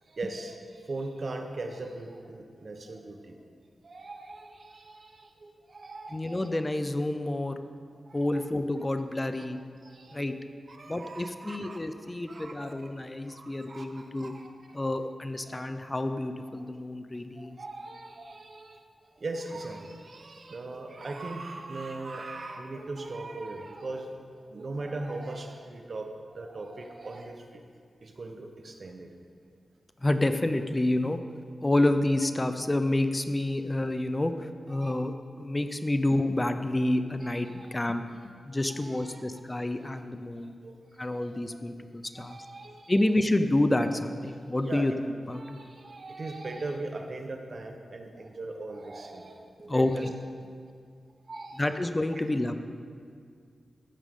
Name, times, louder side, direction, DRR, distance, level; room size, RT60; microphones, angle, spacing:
voice 1, 0.1-0.6 0.9-3.4 3.8-6.4 8.1-8.3 9.9-10.4 10.7-11.8 12.3-12.7 13.3-14.5 15.5-15.6 17.4-18.8 19.2-24.2 24.5-27.6 28.0-29.1 34.7-34.9 37.5-37.7 38.8-39.2 40.6-40.8 42.2-42.9 44.7-44.9 45.3-50.1 51.3-51.6, right 2 dB, 50° right, 5 dB, 1.0 m, -39 dB
voice 2, 6.1-7.6 8.1-9.6 10.1-10.3 10.9-14.3 14.7-17.6 30.0-31.2 31.6-38.0 38.5-40.5 41.0-42.4 42.9-44.9 45.3-45.6 49.7-50.1 51.5-52.5, left 1 dB, 20° left, 8 dB, 0.6 m, -28 dB
15.0 x 8.8 x 3.7 m, 2.2 s
wide cardioid pair, 90°, 0 cm